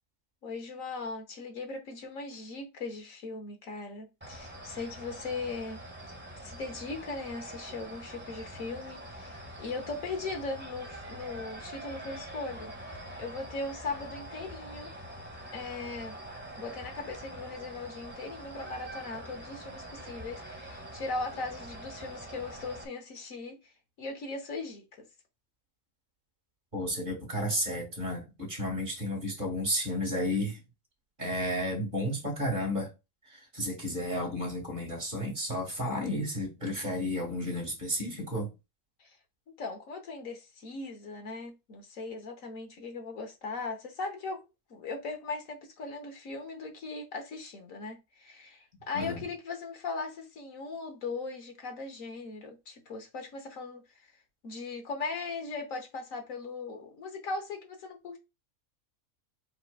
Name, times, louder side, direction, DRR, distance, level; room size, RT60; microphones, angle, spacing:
voice 1, 0.4-5.8 6.4-12.7 13.2-14.9 15.5-16.1 16.6-25.0 39.0-39.2 39.6-44.4 44.7-54.1 54.4-58.2, left 3 dB, 70° left, 1.4 m, -39 dB
sound 1, 4.2-22.8, right 1 dB, 10° right, 0.7 m, -44 dB
voice 2, 26.7-30.6 31.2-32.9 33.3-38.5 48.9-49.2, equal, 35° right, 2.1 m, -32 dB
5.0 x 4.6 x 2.2 m
omnidirectional pair, 1.5 m